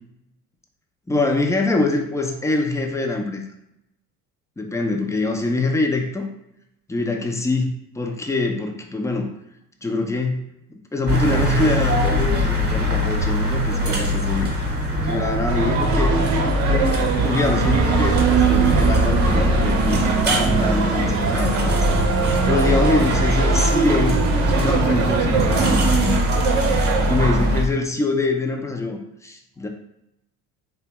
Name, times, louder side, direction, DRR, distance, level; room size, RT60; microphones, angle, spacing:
voice 1, 1.1-3.4 4.6-6.3 6.9-9.3 9.8-10.4 10.9-14.6 15.0-16.1 17.2-21.9 22.5-26.2 27.1-29.7, left 3 dB, 5° left, 3 dB, 0.4 m, -24 dB
sound 1, 11.1-27.7, equal, 20° right, 0.9 m, -21 dB
sound 2, 15.5-27.6, right 5 dB, 80° right, 0.7 m, -22 dB
3.3 x 2.2 x 2.9 m, 0.81 s
hypercardioid pair, 65°, 44 cm